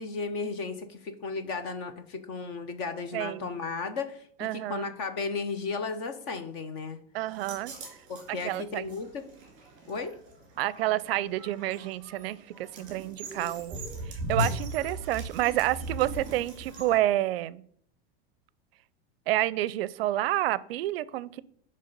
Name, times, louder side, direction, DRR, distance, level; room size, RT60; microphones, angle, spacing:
voice 1, 0.0-7.0 8.1-9.2 9.9-10.2, left 4 dB, 25° left, 9 dB, 0.4 m, -34 dB
voice 2, 3.1-3.5 4.4-4.9 7.1-7.7 8.3-8.9 10.6-13.8 14.1-17.6 19.3-21.4, right 15 dB, 75° right, 19 dB, 0.4 m, -29 dB
sound 1, 7.3-17.0, equal, 25° right, 2.0 m, -38 dB
9.6 x 3.3 x 5.2 m, 0.64 s
supercardioid pair, 180°, 30 cm